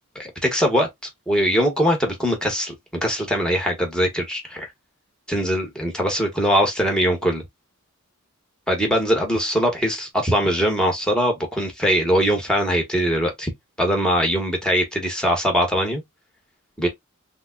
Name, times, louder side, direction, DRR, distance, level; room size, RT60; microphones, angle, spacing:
voice 1, 0.1-0.9 1.3-2.7 3.0-4.7 5.3-7.4 8.7-13.5 13.8-16.0 16.8-16.9, equal, 5° left, 1.1 m, -21 dB
3.5 x 2.2 x 3.6 m
head